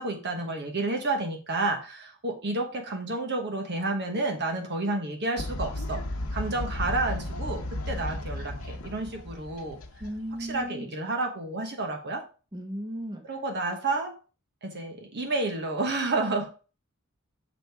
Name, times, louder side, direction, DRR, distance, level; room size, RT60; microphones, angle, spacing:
voice 1, 0.0-6.0 6.3-9.8 10.4-12.2 13.2-14.1 14.6-16.5, right 2 dB, 50° right, 3 dB, 1.1 m, -30 dB
Fowl, 5.4-10.7, left 1 dB, 75° left, 0.9 m, -34 dB
voice 2, 10.0-10.9 12.5-13.2, equal, 20° right, 2 dB, 1.2 m, -35 dB
6.3 x 5.0 x 3.5 m, 0.35 s
head